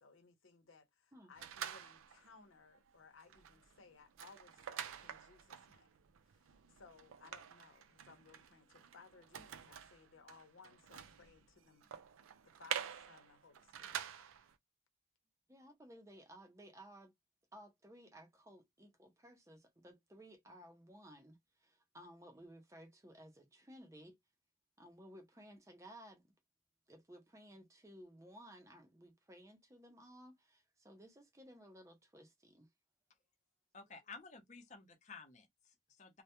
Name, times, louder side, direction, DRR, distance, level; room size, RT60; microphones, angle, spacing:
voice 1, 0.0-5.9 6.8-11.9 12.4-14.0, left 4 dB, 80° left, 0.7 m, -62 dB
sound 1, 1.4-2.3 2.7-2.9 3.2-14.5, right 9 dB, 85° right, 0.4 m, -48 dB
voice 2, 15.5-17.1 17.5-24.2 24.8-26.2 26.9-32.7, equal, 15° right, 0.5 m, -57 dB
voice 3, 33.7-36.2, left 4 dB, 35° left, 0.6 m, -54 dB
2.2 x 2.1 x 2.8 m
head